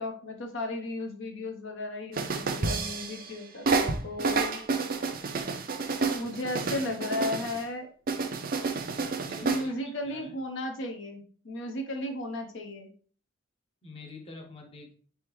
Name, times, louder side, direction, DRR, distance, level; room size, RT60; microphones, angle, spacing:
voice 1, 0.0-4.6 6.1-7.9 9.4-12.9, left 1 dB, 65° left, 4 dB, 0.7 m, -35 dB
sound 1, 2.1-3.3 3.7-7.6 8.1-9.7, right 4 dB, 45° right, 0.4 m, -30 dB
voice 2, 9.0-10.4 13.8-14.9, left 2 dB, 25° left, 2 dB, 0.7 m, -46 dB
4.4 x 3.4 x 2.9 m, 0.43 s
head